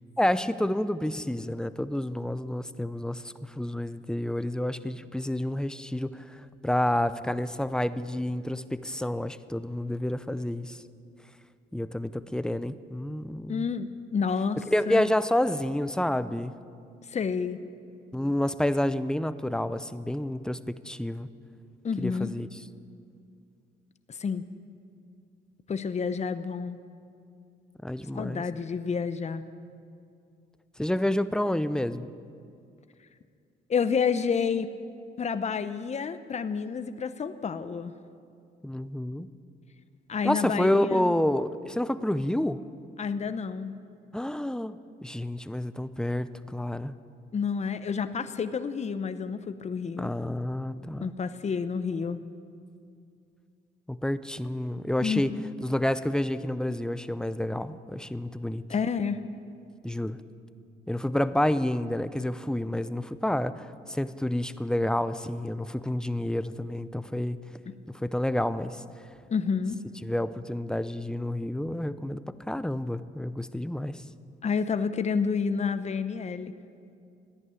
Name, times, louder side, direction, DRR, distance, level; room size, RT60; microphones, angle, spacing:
voice 1, 0.2-10.8 11.7-13.7 14.7-16.5 18.1-21.3 22.0-22.5 27.8-28.4 30.8-32.1 38.6-39.3 40.2-42.6 44.1-46.9 50.0-51.1 53.9-55.3 55.6-58.6 59.8-60.2 60.9-67.4 67.9-68.8 70.0-74.0, left 1 dB, 5° left, 13 dB, 0.6 m, -29 dB
voice 2, 13.5-15.1 17.1-17.6 21.8-22.3 24.1-24.4 25.7-26.8 28.1-29.4 33.7-34.7 35.2-37.9 40.1-41.2 43.0-43.7 47.3-50.1 51.0-52.2 55.0-55.4 58.7-59.2 69.3-69.8 74.4-76.5, left 6 dB, 35° left, 11 dB, 0.8 m, -29 dB
14.5 x 10.5 x 8.3 m, 2.4 s
cardioid pair, 70°, 19 cm